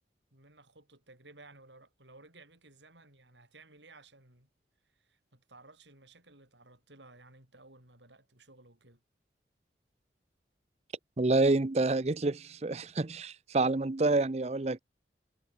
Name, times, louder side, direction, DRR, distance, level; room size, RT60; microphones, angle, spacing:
voice 1, 0.3-4.5 4.8-9.0, right 2 dB, 85° right, 7.6 m, -57 dB
voice 2, 11.2-14.8, right 2 dB, 35° right, 0.6 m, -28 dB
head